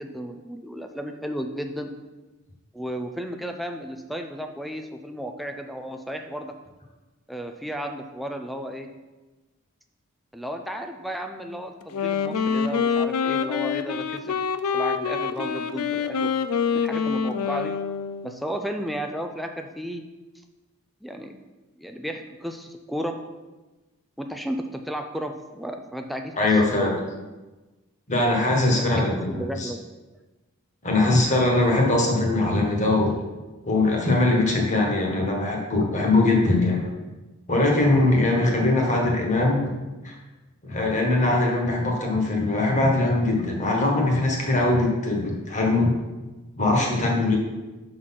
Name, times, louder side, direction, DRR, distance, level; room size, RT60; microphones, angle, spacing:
voice 1, 0.0-1.9 2.7-6.5 7.3-8.9 10.3-14.4 14.7-16.3 16.7-17.7 18.2-20.0 21.0-21.4 21.8-23.2 24.2-27.1 28.7-29.9, equal, ahead, 5 dB, 0.4 m, -33 dB
Wind instrument woodwind instrument, 11.8-18.3, left 6 dB, 90° left, 0.4 m, -26 dB
voice 2, 26.4-26.9 28.1-29.7 30.8-33.1 33.6-36.8 37.5-39.6 40.0-40.2 40.6-45.9 46.6-47.4, left 2 dB, 35° left, -1 dB, 1.4 m, -21 dB
6.4 x 4.1 x 5.8 m, 1.2 s
head